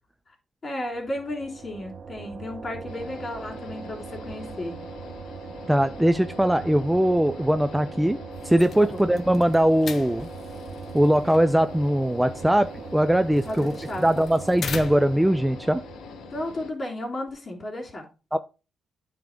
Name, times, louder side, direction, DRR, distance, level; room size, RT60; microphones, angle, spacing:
voice 1, 0.6-4.8 8.8-9.0 13.4-14.1 16.3-18.0, left 1 dB, 35° left, 0 dB, 3.2 m, -33 dB
sound 1, 0.9-16.7, right 5 dB, 50° right, 0.6 m, -40 dB
sound 2, 2.9-16.7, left 8 dB, 75° left, 0.9 m, -45 dB
voice 2, 5.7-8.2 8.4-10.3 10.9-13.7 14.0-15.8 18.3-18.4, right 1 dB, 5° right, 10 dB, 0.4 m, -21 dB
sound 3, 8.3-15.3, left 6 dB, 50° left, 0.8 m, -41 dB
9.2 x 3.6 x 5.2 m, 0.31 s
cardioid pair, 90°, 0 cm